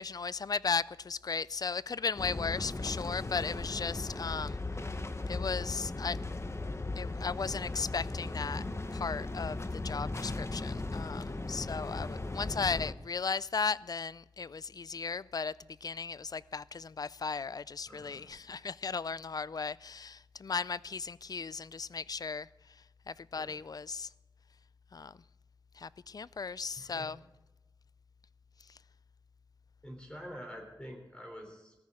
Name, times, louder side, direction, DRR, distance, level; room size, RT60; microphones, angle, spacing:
voice 1, 0.0-4.6 5.3-6.2 7.0-8.6 8.9-9.6 9.8-15.5 15.8-22.5 23.1-24.1 24.9-25.1 25.8-27.2, left 5 dB, 50° left, 0.3 m, -36 dB
sound 1, 2.2-12.9, left 2 dB, 35° left, 0.9 m, -37 dB
voice 2, 17.9-18.3 23.3-23.5 26.8-27.1 29.8-31.7, equal, 10° left, 3.3 m, -47 dB
18.5 x 14.0 x 3.7 m
wide cardioid pair, 75°, 8 cm